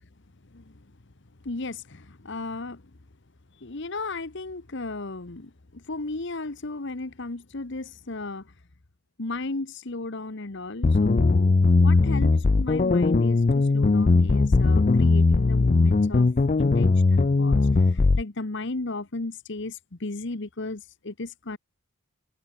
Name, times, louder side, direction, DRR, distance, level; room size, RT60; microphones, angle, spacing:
voice 1, 0.5-0.9 1.4-2.9 3.6-8.5 9.2-16.3 16.6-21.6, left 2 dB, 55° left, 1.2 m, -35 dB
sound 1, 10.8-18.2, left 3 dB, 35° left, 0.4 m, -19 dB
head